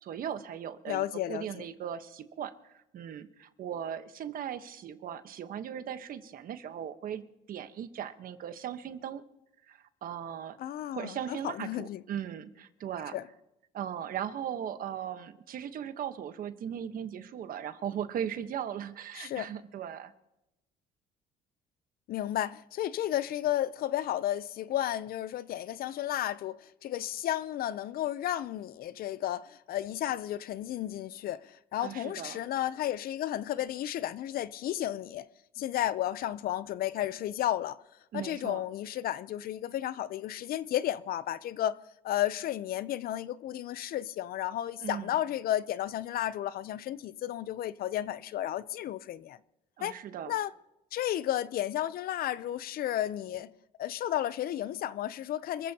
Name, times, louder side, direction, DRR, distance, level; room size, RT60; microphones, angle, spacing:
voice 1, 0.0-9.2 9.7-10.6 10.9-13.2 13.7-20.1 31.8-32.4 38.1-38.6 44.8-45.2 49.8-50.3, right 9 dB, 55° right, 1.1 m, -38 dB
voice 2, 0.9-1.6 10.6-12.0 13.1-13.2 19.1-19.5 22.1-35.3 35.6-37.8 38.1-41.8 42.0-49.4 49.8-49.9 50.3-50.5 50.9-53.5 53.8-55.7, left 12 dB, 60° left, 0.6 m, -33 dB
28.0 x 14.5 x 2.9 m
cardioid pair, 110°, 17 cm